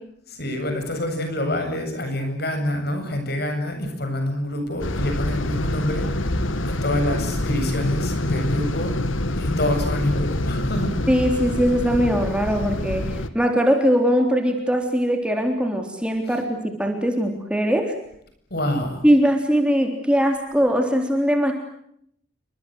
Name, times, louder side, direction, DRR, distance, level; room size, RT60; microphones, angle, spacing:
voice 1, 0.3-8.9 9.3-11.0 18.5-19.1, left 1 dB, 50° left, 6 dB, 7.8 m, -26 dB
sound 1, 4.8-13.3, left 1 dB, 80° left, 1.9 m, -26 dB
voice 2, 11.1-17.9 19.0-21.5, equal, 5° right, 4 dB, 3.6 m, -21 dB
30.0 x 25.0 x 8.0 m, 0.71 s
head